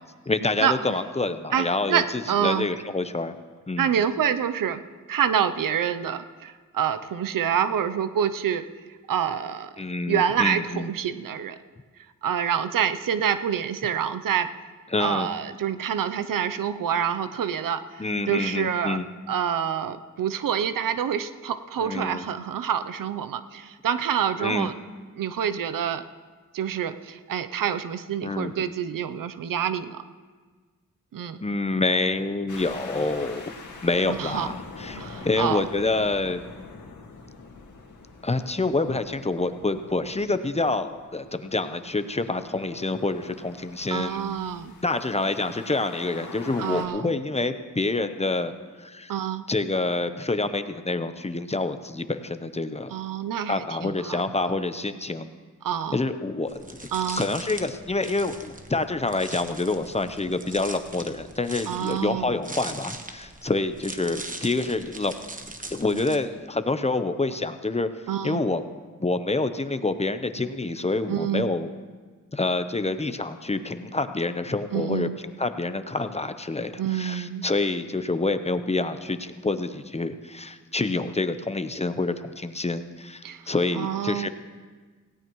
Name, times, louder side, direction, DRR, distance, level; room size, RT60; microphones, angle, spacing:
voice 1, 0.3-3.3 3.7-3.9 9.8-10.9 14.9-15.3 18.0-19.0 21.8-22.3 24.4-24.7 28.2-28.7 31.4-33.4 33.8-36.4 38.2-44.3 44.8-48.5 48.8-49.1 49.5-52.9 53.5-55.3 55.9-56.8 57.1-65.1 65.7-67.9 68.2-68.6 69.0-71.7 72.3-84.3, left 2 dB, 20° left, 10 dB, 0.8 m, -27 dB
voice 2, 1.5-2.7 3.8-4.8 5.1-8.7 9.1-9.7 10.1-11.6 12.2-14.5 15.0-19.0 19.3-24.7 25.1-26.0 26.5-30.0 31.1-31.4 34.1-34.5 34.9-35.6 43.9-44.7 46.6-47.1 49.1-49.5 52.9-54.2 55.6-56.0 56.9-57.2 61.7-62.4 68.1-68.4 71.1-71.5 74.7-75.2 76.8-77.4 83.2-84.3, right 8 dB, 80° right, 11 dB, 0.7 m, -27 dB
sound 1, 32.5-46.9, left 4 dB, 65° left, 2.0 m, -44 dB
sound 2, 56.5-66.2, right 2 dB, 25° right, 1.2 m, -41 dB
18.0 x 16.5 x 3.1 m, 1.5 s
cardioid pair, 75°, 32 cm